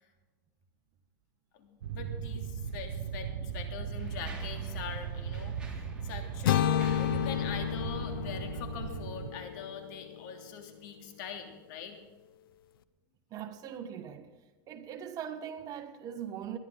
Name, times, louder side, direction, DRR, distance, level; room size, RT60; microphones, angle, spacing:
voice 1, 1.5-5.6 6.0-12.0, left 6 dB, 60° left, 3.0 m, -43 dB
sound 1, 1.8-9.3, right 7 dB, 85° right, 1.2 m, -38 dB
Mechanisms, 2.6-2.7 3.5-9.2, right 3 dB, 10° right, 3.3 m, -53 dB
sound 2, 6.4-10.5, left 11 dB, 90° left, 0.8 m, -31 dB
voice 2, 13.3-14.3 14.7-16.6, right 9 dB, 30° right, 1.4 m, -40 dB
21.0 x 11.5 x 4.0 m
supercardioid pair, 145°, 12 cm